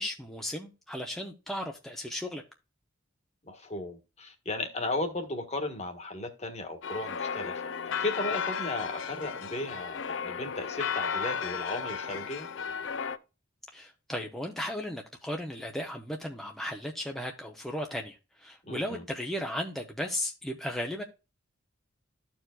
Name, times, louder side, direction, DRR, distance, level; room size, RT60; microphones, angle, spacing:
voice 1, 0.0-2.4 13.7-21.0, left 1 dB, ahead, 0.7 m, -35 dB
voice 2, 3.5-12.5 18.7-19.0, left 2 dB, 35° left, 1.4 m, -35 dB
sound 1, 6.8-13.2, left 6 dB, 70° left, 0.5 m, -34 dB
13.5 x 4.5 x 2.3 m
head